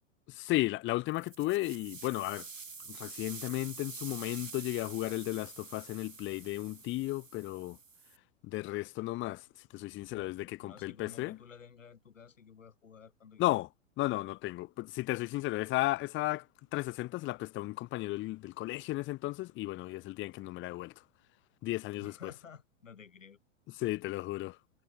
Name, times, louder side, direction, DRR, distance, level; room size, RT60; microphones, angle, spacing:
voice 1, 0.3-2.5 2.9-7.8 8.4-9.4 9.7-11.4 13.4-13.7 14.0-16.5 16.7-20.9 21.6-22.3 23.8-24.6, left 18 dB, 30° left, 1.1 m, -34 dB
sound 1, 1.1-8.2, right 5 dB, 90° right, 7.6 m, -47 dB
voice 2, 10.1-13.5 21.9-23.4, left 7 dB, 80° left, 5.0 m, -53 dB
hypercardioid pair, 105°, 38 cm